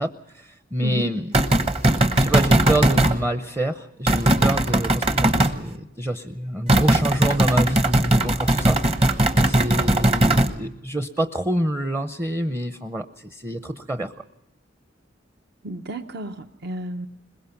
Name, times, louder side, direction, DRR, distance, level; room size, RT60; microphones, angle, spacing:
voice 1, 0.0-1.3 2.2-14.1, right 1 dB, 15° right, 9 dB, 0.6 m, -27 dB
sound 1, 1.3-3.2 4.1-5.6 6.7-10.5, right 1 dB, 30° right, 1.0 m, -19 dB
voice 2, 15.6-17.1, right 1 dB, 60° right, 7 dB, 0.8 m, -32 dB
22.0 x 20.5 x 5.8 m, 0.88 s
head